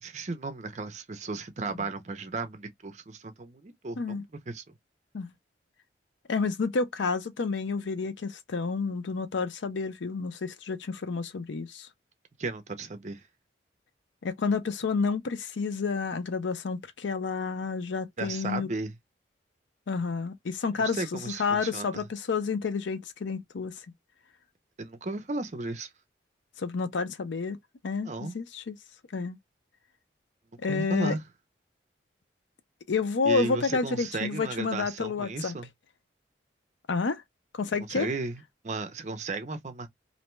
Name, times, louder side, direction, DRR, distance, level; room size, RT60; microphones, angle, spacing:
voice 1, 0.0-4.7 12.4-13.2 18.2-18.9 20.8-22.0 24.8-25.9 28.1-28.4 30.7-31.2 33.2-35.7 37.9-39.9, right 3 dB, 40° right, 0.5 m, -35 dB
voice 2, 6.3-11.9 14.2-18.7 19.9-23.8 26.6-27.6 27.8-28.7 29.1-29.4 30.6-31.2 32.9-35.6 36.9-37.2 37.5-38.1, left 4 dB, 85° left, 0.5 m, -30 dB
2.6 x 2.2 x 3.0 m
head